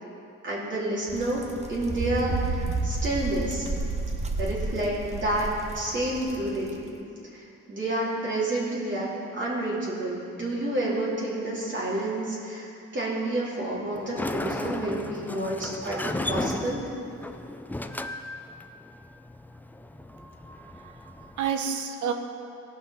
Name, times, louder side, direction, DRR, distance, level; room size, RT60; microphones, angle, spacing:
voice 1, 0.4-1.4 1.7-3.7 4.4-5.5 5.7-6.9 7.3-16.8, right 1 dB, 40° right, -7 dB, 3.1 m, -29 dB
sound 1, 1.1-6.8, right 2 dB, 20° right, 0.9 m, -31 dB
Sliding door, 13.9-21.5, left 1 dB, 5° left, 0.4 m, -35 dB
voice 2, 20.1-22.1, right 7 dB, 75° right, 6 dB, 0.9 m, -32 dB
16.5 x 5.6 x 5.7 m, 2.7 s
cardioid pair, 90°, 30 cm